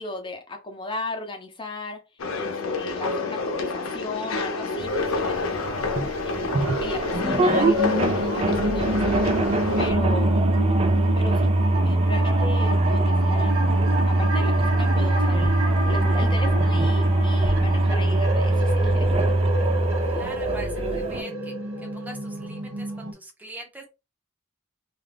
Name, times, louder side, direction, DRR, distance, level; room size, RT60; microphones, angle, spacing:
voice 1, 0.0-2.0 2.3-5.8 6.2-9.1 9.8-10.5 11.2-11.5 11.8-13.6 14.1-15.6 15.9-19.1, left 2 dB, 25° left, 0.7 m, -36 dB
sound 1, 2.2-9.9, left 4 dB, 80° left, 0.6 m, -28 dB
sound 2, 4.7-23.1, right 1 dB, 90° right, 0.8 m, -29 dB
sound 3, 4.8-21.2, right 2 dB, 30° right, 0.4 m, -23 dB
voice 2, 20.1-21.5 21.9-23.8, right 2 dB, 10° right, 0.8 m, -42 dB
2.5 x 2.4 x 3.4 m
head